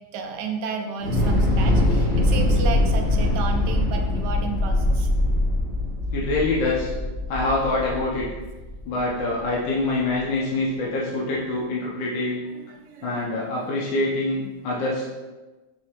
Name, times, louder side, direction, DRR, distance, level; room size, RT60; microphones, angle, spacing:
voice 1, 0.1-5.1 9.5-9.6 12.5-13.3, right 4 dB, 70° right, 3 dB, 1.0 m, -32 dB
Thunder / Explosion, 1.0-9.2, left 1 dB, 35° left, 1.5 m, -22 dB
voice 2, 6.1-6.9 7.3-8.3 8.8-12.4 13.0-15.0, left 2 dB, 75° left, -5 dB, 1.4 m, -25 dB
4.8 x 3.1 x 2.9 m, 1.2 s
omnidirectional pair, 2.1 m